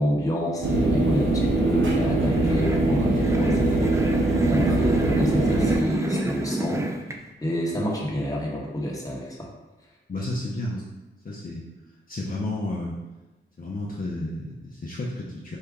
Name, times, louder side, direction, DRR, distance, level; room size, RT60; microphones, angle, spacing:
voice 1, 0.0-4.0 4.5-6.8 7.4-9.5, equal, 15° left, -3 dB, 1.2 m, -28 dB
sound 1, 0.6-5.8, right 2 dB, 70° right, 1.1 m, -22 dB
sound 2, 2.0-7.2, right 1 dB, 15° right, 0.4 m, -29 dB
voice 2, 10.1-10.9 11.2-11.6 12.1-13.0 13.6-15.6, left 1 dB, 45° left, -4 dB, 0.7 m, -31 dB
4.7 x 2.7 x 3.5 m, 1.1 s
cardioid pair, 70°, 21 cm